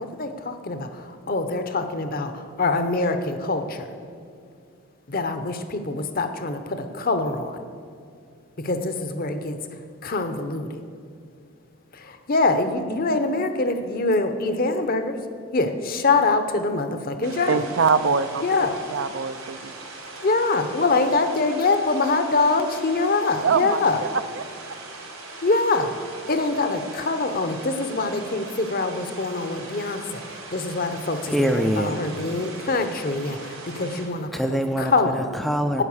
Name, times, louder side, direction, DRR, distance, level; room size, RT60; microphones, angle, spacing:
voice 1, 0.0-3.9 5.1-7.6 8.6-10.8 11.9-15.1 15.5-17.6 18.4-18.8 20.2-24.0 25.4-25.9 26.3-34.3 34.8-35.2 35.8-35.9, left 3 dB, 40° left, 8 dB, 0.8 m, -24 dB
sound 1, 17.2-34.1, right 3 dB, 80° right, 3.7 m, -40 dB
voice 2, 17.5-18.4 18.9-19.7 23.4-24.7, right 5 dB, 55° right, 11 dB, 0.5 m, -24 dB
voice 3, 31.3-31.9 34.3-35.8, equal, ahead, 5 dB, 0.4 m, -24 dB
11.0 x 9.1 x 7.2 m, 2.3 s
head